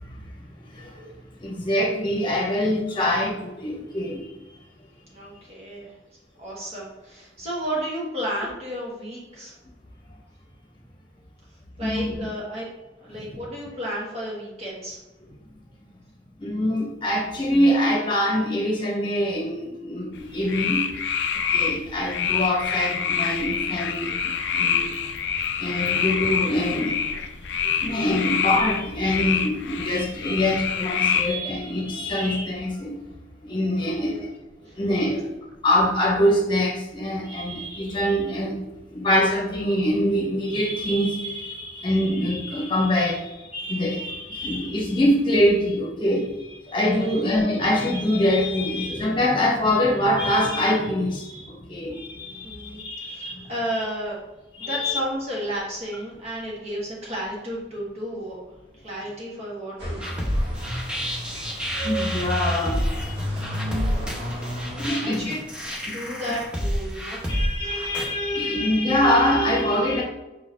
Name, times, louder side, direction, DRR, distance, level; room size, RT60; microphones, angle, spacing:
voice 1, 0.7-1.1 1.4-4.3 11.8-12.2 13.1-13.4 16.4-20.9 21.5-25.1 25.6-33.0 33.4-34.3 34.7-35.2 35.6-38.6 38.9-53.8 54.5-55.0 61.8-63.2 63.7-63.8 64.8-65.4 65.9-66.0 67.3-70.0, left 1 dB, 25° left, -2 dB, 1.1 m, -24 dB
voice 2, 5.1-5.9 6.4-9.5 11.8-12.7 13.0-15.0 34.0-34.2 34.7-35.2 46.8-47.1 52.4-54.2 54.6-58.4 58.7-60.1 65.0-65.4 65.9-67.2, equal, 35° right, -4 dB, 1.4 m, -32 dB
sound 1, 20.2-31.4, left 7 dB, 70° left, 0.4 m, -26 dB
sound 2, 59.8-64.9, equal, 80° right, 1.6 m, -32 dB
sound 3, 60.0-68.0, equal, 5° right, 0.7 m, -29 dB
5.1 x 4.1 x 2.4 m, 1.0 s
head